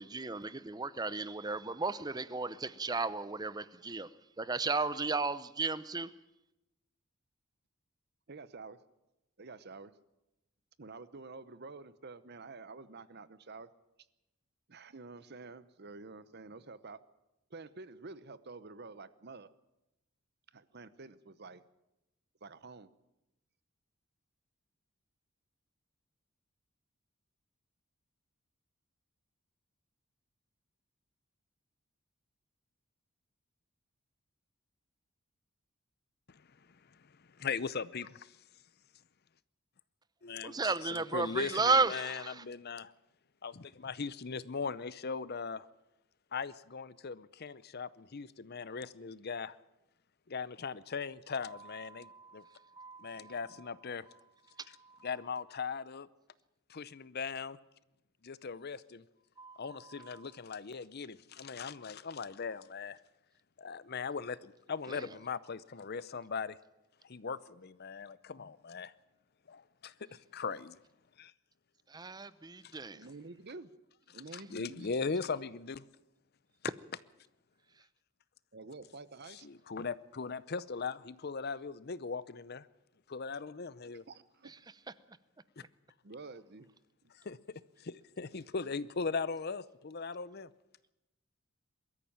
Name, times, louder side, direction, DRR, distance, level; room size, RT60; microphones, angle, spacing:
voice 1, 0.0-4.1 4.4-6.1 40.4-42.4 51.9-53.4 54.8-55.0 59.4-60.2 64.9-65.1 71.9-73.0, right 3 dB, 20° right, 0.7 m, -34 dB
voice 2, 8.3-8.8 9.4-9.9 10.8-13.7 14.7-17.0 17.5-19.5 20.5-21.6 22.4-22.9 72.8-73.7 74.1-74.9 78.5-79.5 84.1-84.5 86.0-86.7, right 3 dB, 50° right, 0.9 m, -49 dB
voice 3, 37.4-38.4 40.2-42.9 43.4-45.7 46.3-49.6 50.3-52.4 53.0-54.1 55.0-56.1 56.7-57.6 58.2-59.0 59.6-63.0 63.6-66.6 67.0-68.9 69.5-70.8 71.2-71.3 72.6-72.8 74.1-75.8 79.3-82.7 83.1-84.0 85.6-85.7 87.2-90.5, left 5 dB, 50° left, 0.6 m, -39 dB
22.0 x 13.5 x 8.8 m
head